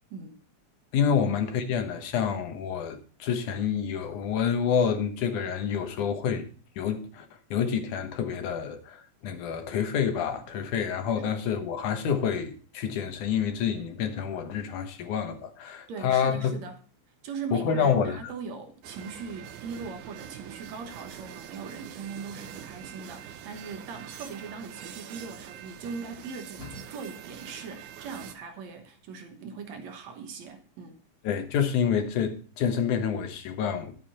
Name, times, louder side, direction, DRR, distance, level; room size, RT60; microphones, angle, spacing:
voice 1, 0.9-6.5 6.8-7.3 7.5-16.6 17.5-18.2 31.2-33.9, left 7 dB, 80° left, 2.7 m, -28 dB
voice 2, 15.7-16.8 17.2-31.0, right 5 dB, 65° right, 2.5 m, -40 dB
sound 1, 18.8-28.4, right 10 dB, 85° right, 2.4 m, -44 dB
11.0 x 8.5 x 4.2 m
omnidirectional pair, 3.5 m